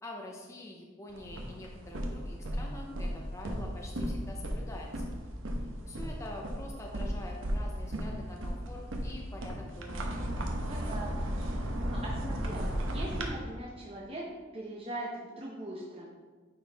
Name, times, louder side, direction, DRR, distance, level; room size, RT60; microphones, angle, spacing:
voice 1, 0.0-5.0 5.8-10.1, left 1 dB, 15° left, -1 dB, 0.7 m, -46 dB
sound 1, 1.1-13.3, equal, 75° right, 1.0 m, -35 dB
voice 2, 10.7-14.3 14.5-16.1, right 1 dB, 30° right, -4 dB, 0.8 m, -41 dB
9.5 x 4.5 x 3.5 m, 1.4 s
head